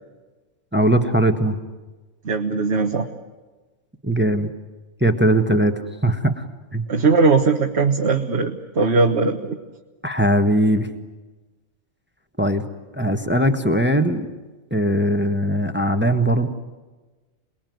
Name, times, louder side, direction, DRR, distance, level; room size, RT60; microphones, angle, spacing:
voice 1, 0.7-1.6 4.0-4.5 5.0-5.7 6.0-6.3 6.7-6.8 10.0-10.9 12.4-12.6 12.9-14.3 14.7-16.5, right 1 dB, 10° right, 7 dB, 1.4 m, -19 dB
voice 2, 2.2-3.1 6.9-9.6, right 4 dB, 55° right, 3 dB, 1.6 m, -19 dB
28.5 x 20.5 x 9.4 m, 1.2 s
omnidirectional pair, 1.4 m